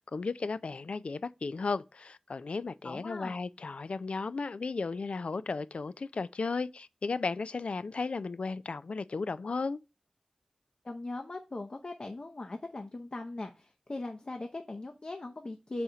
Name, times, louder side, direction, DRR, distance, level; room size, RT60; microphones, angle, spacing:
voice 1, 0.0-9.8, left 4 dB, 75° left, 0.4 m, -35 dB
voice 2, 2.8-3.3 10.8-15.8, left 2 dB, 50° left, 0.7 m, -39 dB
5.6 x 4.2 x 4.8 m
wide cardioid pair, 50°, 2 cm